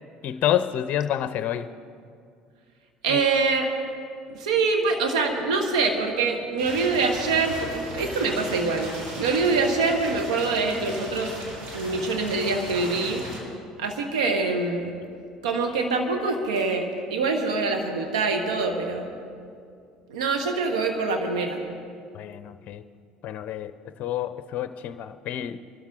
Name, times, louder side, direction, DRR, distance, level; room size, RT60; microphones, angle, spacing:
voice 1, 0.2-1.7 3.1-3.2 22.1-22.8 23.2-23.7 24.0-25.6, left 11 dB, 55° left, 12 dB, 0.5 m, -28 dB
voice 2, 3.0-3.7 4.3-8.9 9.2-11.3 11.7-13.2 13.8-14.9 15.4-19.1 20.1-21.6, right 4 dB, 80° right, 4 dB, 1.3 m, -24 dB
sound 1, 6.6-13.4, right 1 dB, 65° right, 3.6 m, -37 dB
23.5 x 12.5 x 3.7 m, 2.3 s
hypercardioid pair, 65°, 3 cm